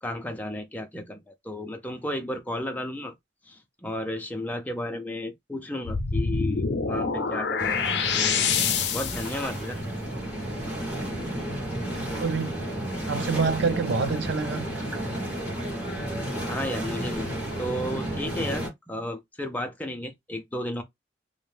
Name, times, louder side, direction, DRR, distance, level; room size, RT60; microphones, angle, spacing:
voice 1, 0.0-3.1 3.5-8.5 8.9-9.8 16.5-17.3 17.6-20.8, left 1 dB, 10° left, 0.4 m, -33 dB
sound 1, 5.8-9.4, left 6 dB, 75° left, 0.5 m, -26 dB
sound 2, 7.6-18.7, right 1 dB, 5° right, 1.1 m, -32 dB
voice 2, 12.2-12.5 13.1-14.7, right 5 dB, 85° right, 0.5 m, -26 dB
2.6 x 2.1 x 3.2 m
head